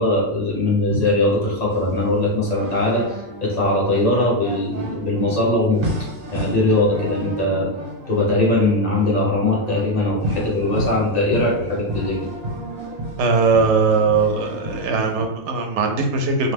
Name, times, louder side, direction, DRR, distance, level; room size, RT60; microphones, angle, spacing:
voice 1, 0.0-3.0 3.4-5.8 6.3-7.7 8.1-12.2, left 2 dB, 40° left, -4 dB, 0.9 m, -20 dB
sound 1, 1.7-15.2, equal, 55° right, 1.1 m, -32 dB
voice 2, 13.2-16.5, right 4 dB, 80° right, 4 dB, 0.9 m, -19 dB
2.9 x 2.1 x 3.3 m, 0.87 s
omnidirectional pair, 1.2 m